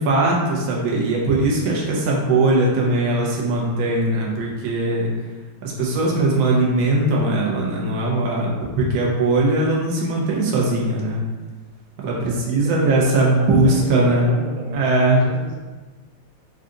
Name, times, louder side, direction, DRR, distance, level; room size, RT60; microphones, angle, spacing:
voice 1, 0.0-5.1 5.6-11.2 12.0-14.3 14.7-15.2, right 2 dB, 60° right, -3 dB, 1.0 m, -20 dB
voice 2, 12.2-15.6, right 2 dB, 85° right, -1 dB, 1.5 m, -34 dB
3.8 x 2.3 x 3.8 m, 1.3 s
omnidirectional pair, 2.3 m